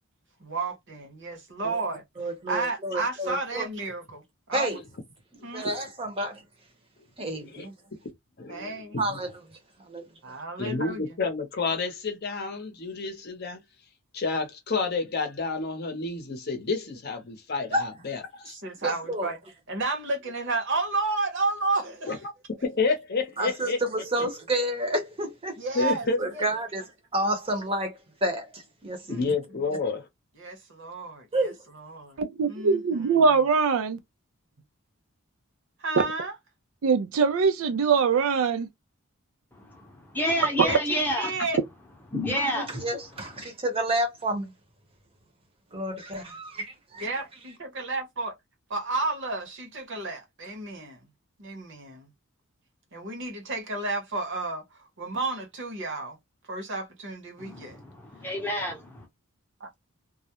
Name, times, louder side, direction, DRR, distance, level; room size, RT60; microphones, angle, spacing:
voice 1, 0.4-4.2 4.5-4.8 5.4-5.7 7.6-7.7 8.5-9.0 10.2-11.0 18.4-19.4 19.7-22.2 25.6-26.4 29.1-29.3 30.4-32.2 32.5-33.2 35.8-36.3 40.6-41.6 47.0-48.4 48.7-51.0 51.4-52.1 52.9-56.2 56.5-57.8 59.6-59.7, right 3 dB, 55° right, 0.8 m, -32 dB
voice 2, 2.2-3.7 4.5-4.8 5.5-6.4 7.2-7.5 9.0-9.3 9.9-10.1 17.7-17.9 18.8-19.3 23.4-25.6 26.2-26.8 27.1-29.2 31.3-31.6 42.4-44.5 45.7-47.1, right 1 dB, 25° right, 0.7 m, -30 dB
voice 3, 5.4-5.8 7.5-7.7 8.4-9.2 10.6-13.6 14.1-18.5 22.1-22.2 22.6-23.8 25.7-26.5 29.1-30.1, left 4 dB, 45° left, 0.7 m, -30 dB
voice 4, 32.2-34.0 36.8-38.7, right 5 dB, 70° right, 0.4 m, -22 dB
voice 5, 39.6-41.4 42.1-42.9 57.4-59.1, left 1 dB, 10° left, 0.7 m, -29 dB
2.3 x 2.0 x 2.9 m
head